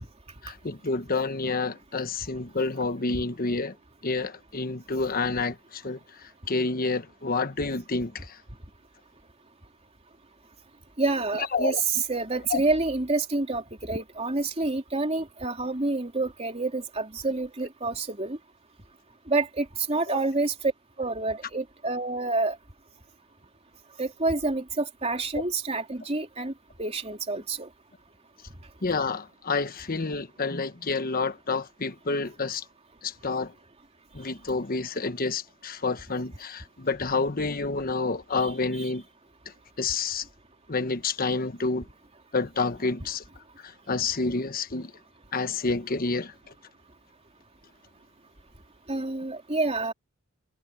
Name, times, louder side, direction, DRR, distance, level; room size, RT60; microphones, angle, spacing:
voice 1, 0.4-3.7 4.0-8.4 11.3-11.8 12.5-12.6 20.1-20.3 25.3-25.4 28.8-32.6 33.0-33.5 34.1-39.0 39.8-40.3 40.7-41.9 42.3-43.2 43.6-44.9 45.3-46.3, left 3 dB, 45° left, 1.2 m, -29 dB
voice 2, 11.0-11.8 12.1-18.4 19.3-20.5 21.0-22.6 24.0-26.5 26.8-27.7 48.9-49.9, right 2 dB, 30° right, 3.2 m, -28 dB
head